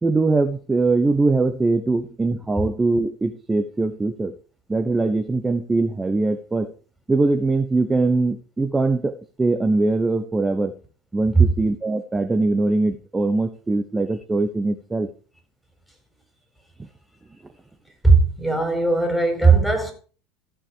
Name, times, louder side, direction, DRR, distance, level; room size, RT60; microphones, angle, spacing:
voice 1, 0.0-4.4 4.7-6.7 7.1-10.7 11.1-15.1, right 3 dB, 15° right, 1.1 m, -22 dB
voice 2, 18.0-19.9, right 4 dB, ahead, 4.5 m, -17 dB
14.5 x 7.6 x 5.0 m
figure-of-eight pair, 75°, 0 cm